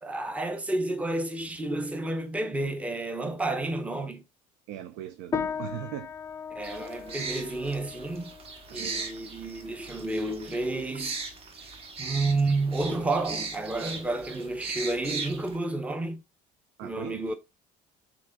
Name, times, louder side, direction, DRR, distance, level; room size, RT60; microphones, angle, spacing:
voice 1, 0.0-4.2 6.5-8.3 8.7-11.2 12.0-16.2 16.8-17.3, right 2 dB, 10° right, 0.7 m, -30 dB
voice 2, 4.7-6.1 8.7-9.1 16.8-17.3, right 11 dB, 90° right, 0.4 m, -39 dB
sound 1, 5.3-15.0, left 6 dB, 20° left, 0.4 m, -40 dB
sound 2, 6.6-15.6, right 4 dB, 40° right, 1.0 m, -39 dB
5.9 x 3.7 x 2.2 m
cardioid pair, 125°, 15 cm